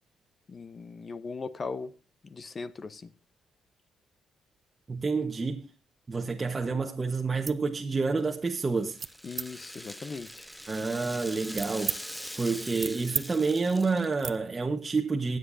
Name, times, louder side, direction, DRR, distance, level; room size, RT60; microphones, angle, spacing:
voice 1, 0.5-1.9 2.2-3.1 9.2-10.5, left 4 dB, 35° left, 0.8 m, -39 dB
voice 2, 4.9-5.7 6.1-9.0 10.7-12.0 12.4-15.4, right 4 dB, 25° right, 1.2 m, -29 dB
sound 1, 7.4-7.6 8.1-8.4 9.0-9.5 10.2-12.0 12.4-13.3 13.6-13.7 14.2-14.4, right 6 dB, 45° right, 0.7 m, -37 dB
Rattle (instrument), 8.2-14.4, equal, ahead, 0.6 m, -43 dB
23.5 x 8.1 x 2.7 m
cardioid pair, 90°, 0 cm